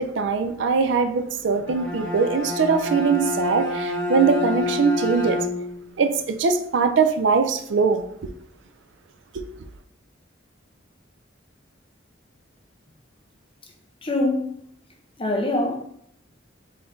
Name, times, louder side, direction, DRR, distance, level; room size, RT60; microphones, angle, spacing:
voice 1, 0.0-5.4 6.0-8.3 9.3-9.4, right 5 dB, 70° right, 0.4 m, -22 dB
Bowed string instrument, 1.5-5.8, left 3 dB, 10° left, 1.7 m, -28 dB
voice 2, 14.0-14.6 15.2-15.8, left 2 dB, 25° left, 0.7 m, -23 dB
4.0 x 3.2 x 3.8 m
head